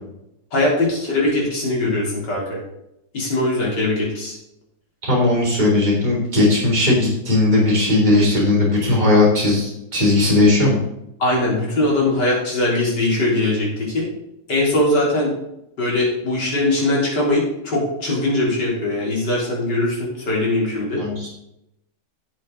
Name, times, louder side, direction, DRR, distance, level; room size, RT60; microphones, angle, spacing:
voice 1, 0.5-2.6 3.1-4.3 11.2-14.1 14.5-15.3 15.8-21.0, left 2 dB, 65° left, -4 dB, 4.2 m, -21 dB
voice 2, 5.0-10.8 21.0-21.3, left 2 dB, 25° right, -4 dB, 3.6 m, -17 dB
12.0 x 7.6 x 3.9 m, 0.83 s
omnidirectional pair, 2.0 m